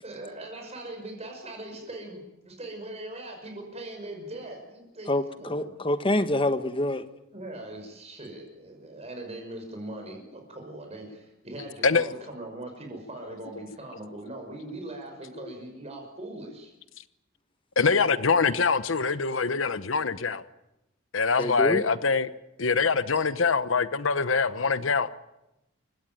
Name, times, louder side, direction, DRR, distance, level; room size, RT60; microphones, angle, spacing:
voice 1, 0.0-5.7 7.3-16.7, right 1 dB, 30° right, 3 dB, 5.7 m, -40 dB
voice 2, 5.5-7.0 21.4-21.8, left 1 dB, 25° left, 11 dB, 1.4 m, -25 dB
voice 3, 17.8-20.4 21.1-22.3 22.6-25.1, left 5 dB, 75° left, 14 dB, 1.0 m, -24 dB
28.5 x 16.5 x 9.3 m, 0.90 s
head